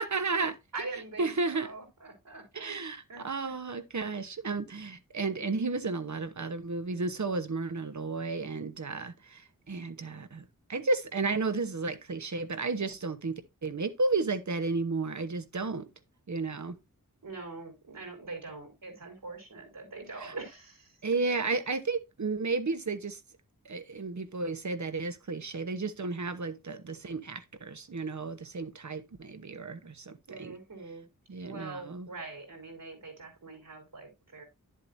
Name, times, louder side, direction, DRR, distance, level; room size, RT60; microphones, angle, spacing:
voice 1, 0.0-0.5 1.2-1.7 2.5-10.4 10.7-15.9 16.3-16.8 20.2-20.3 21.0-23.2 23.6-30.6 31.3-32.1, right 3 dB, 60° right, 1.1 m, -33 dB
voice 2, 0.7-2.8 3.1-3.5 17.2-20.9 21.3-21.4 30.3-31.0 31.4-34.4, right 3 dB, 75° right, 4.4 m, -43 dB
11.0 x 7.6 x 2.6 m
wide cardioid pair, 75°, 33 cm